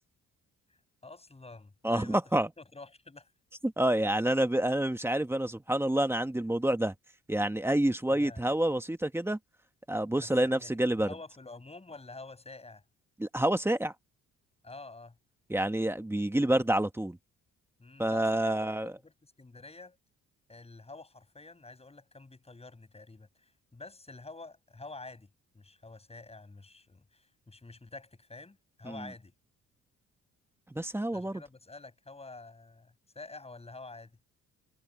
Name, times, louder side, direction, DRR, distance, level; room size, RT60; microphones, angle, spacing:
voice 1, 1.0-2.2 2.6-3.3 8.1-8.5 10.2-12.8 14.6-15.2 17.8-20.0 20.5-25.3 25.5-29.3 31.1-34.1, left 3 dB, 20° left, 7.4 m, -48 dB
voice 2, 1.8-2.5 3.6-6.9 7.3-9.4 9.9-11.1 13.2-13.9 15.5-17.2 18.0-18.9 28.8-29.1 30.7-31.4, right 1 dB, 10° right, 1.5 m, -28 dB
cardioid pair, 90°, 30 cm